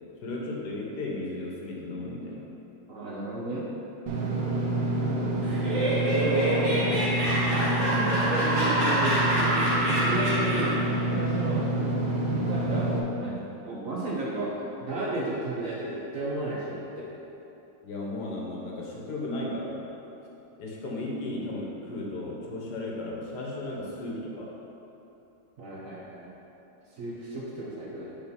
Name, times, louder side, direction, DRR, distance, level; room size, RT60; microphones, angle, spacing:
voice 1, 0.2-2.5 4.4-4.6 17.8-19.8 20.6-24.5, left 2 dB, 65° left, -3 dB, 1.5 m, -35 dB
voice 2, 2.9-3.6 5.2-5.4 6.0-6.7 7.6-9.7 10.0-10.8 11.1-11.7 12.1-17.1 25.6-26.3 27.0-28.1, right 2 dB, 60° right, -5 dB, 1.0 m, -33 dB
Engine / Mechanisms, 4.1-13.0, right 2 dB, 80° right, 1.4 m, -28 dB
Laughter, 5.4-10.9, right 1 dB, 40° right, 1.5 m, -27 dB
5.2 x 4.5 x 5.3 m, 3.0 s
omnidirectional pair, 1.9 m